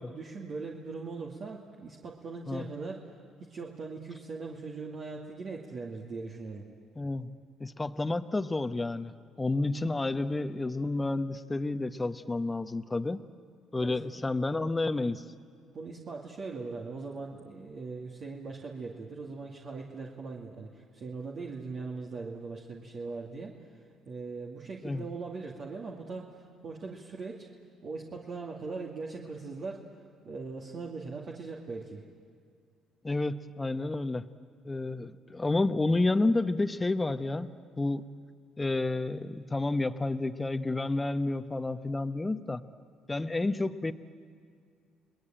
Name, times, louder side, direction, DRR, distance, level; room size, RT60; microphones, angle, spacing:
voice 1, 0.1-3.2 3.5-6.7 13.8-14.3 15.7-27.5 27.8-29.8 30.2-32.0, right 4 dB, 50° right, -2 dB, 2.4 m, -40 dB
voice 2, 7.0-7.3 7.6-9.1 9.4-13.2 13.7-15.2 24.8-25.0 33.0-34.2 34.6-37.5 37.8-38.0 38.6-42.6 43.1-43.9, left 2 dB, 20° left, 9 dB, 1.0 m, -30 dB
30.0 x 20.0 x 8.9 m, 2.2 s
supercardioid pair, 70°, 0 cm